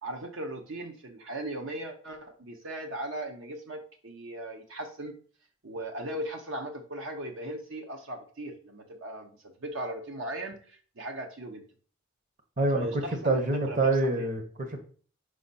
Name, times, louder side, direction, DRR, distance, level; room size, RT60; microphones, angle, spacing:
voice 1, 0.0-5.1 5.6-11.7 12.7-14.3, right 1 dB, 65° right, 4 dB, 0.8 m, -38 dB
voice 2, 12.6-14.8, right 2 dB, 40° right, 5 dB, 0.9 m, -27 dB
5.3 x 4.9 x 4.1 m, 0.43 s
head